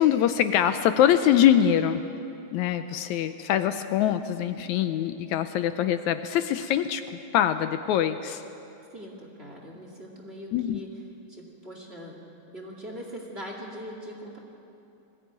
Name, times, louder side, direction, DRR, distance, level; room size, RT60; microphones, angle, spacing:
voice 1, 0.0-2.1 2.5-7.0 7.3-8.4 10.5-10.8, left 10 dB, 80° left, 10 dB, 1.9 m, -23 dB
voice 2, 8.9-10.9 11.3-12.2 12.5-14.4, equal, 20° right, 0 dB, 2.2 m, -41 dB
21.0 x 15.0 x 9.3 m, 2.8 s
omnidirectional pair, 3.5 m